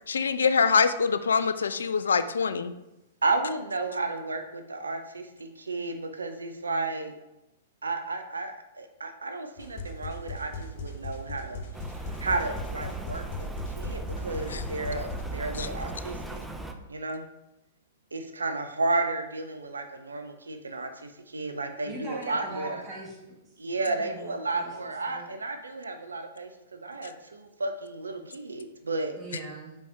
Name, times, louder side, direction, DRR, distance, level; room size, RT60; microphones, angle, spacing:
voice 1, 0.1-2.7 14.5-14.6 15.6-15.7, left 5 dB, 70° left, 11 dB, 0.3 m, -24 dB
voice 2, 3.2-7.1 7.8-11.6 12.2-13.5 13.8-16.4 16.9-17.2 18.1-23.0 23.6-26.5 26.8-29.2, right 3 dB, 75° right, 6 dB, 0.5 m, -32 dB
sound 1, 9.6-15.2, left 2 dB, 50° left, 1.0 m, -39 dB
Rain, 11.7-16.7, right 2 dB, 5° right, 0.5 m, -37 dB
voice 3, 21.8-23.5 23.7-25.3 29.2-29.8, right 2 dB, 25° right, -3 dB, 2.0 m, -41 dB
5.3 x 4.8 x 4.4 m, 0.93 s
figure-of-eight pair, 105°, 0 cm